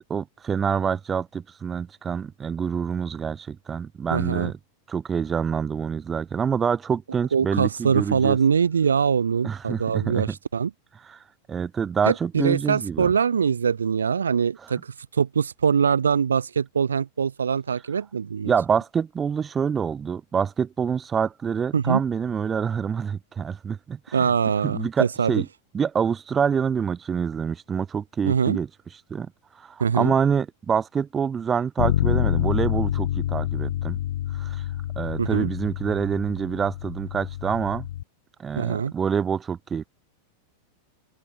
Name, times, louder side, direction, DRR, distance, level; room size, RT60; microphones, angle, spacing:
voice 1, 0.1-4.6 4.9-8.4 9.4-10.4 11.0-11.2 11.5-13.1 18.4-24.3 24.6-25.5 25.7-28.7 29.1-34.0 34.3-34.6 35.0-37.9 38.4-39.8, right 7 dB, 20° right, 1.3 m, -26 dB
voice 2, 4.1-4.5 7.3-10.7 12.1-18.5 21.7-22.0 24.1-25.3 28.2-28.6 29.8-30.1 35.2-35.5 38.6-38.9, right 6 dB, 70° right, 0.5 m, -23 dB
Bass guitar, 31.8-38.0, left 12 dB, 60° left, 0.8 m, -27 dB
open air
figure-of-eight pair, 90°, 0 cm